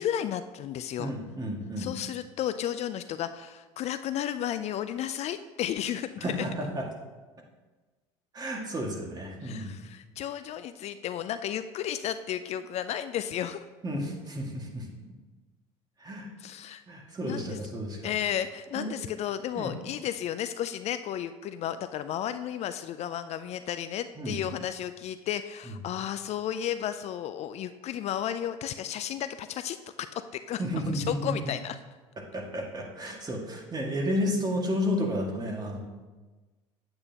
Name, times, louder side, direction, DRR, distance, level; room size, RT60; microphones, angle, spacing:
voice 1, 0.0-1.1 1.8-6.2 9.4-13.6 16.4-16.8 17.2-17.6 18.0-29.8 30.1-30.6 30.9-31.8, left 10 dB, 50° left, 11 dB, 0.4 m, -33 dB
voice 2, 1.0-1.9 6.2-6.9 8.3-9.7 13.8-14.9 16.0-16.3 16.9-18.1 18.7-18.9 19.6-19.7 24.2-24.4 25.7-25.8 30.6-31.4 32.2-35.8, equal, 25° right, 0 dB, 1.9 m, -32 dB
8.7 x 8.6 x 2.9 m, 1.3 s
hypercardioid pair, 75°, 15 cm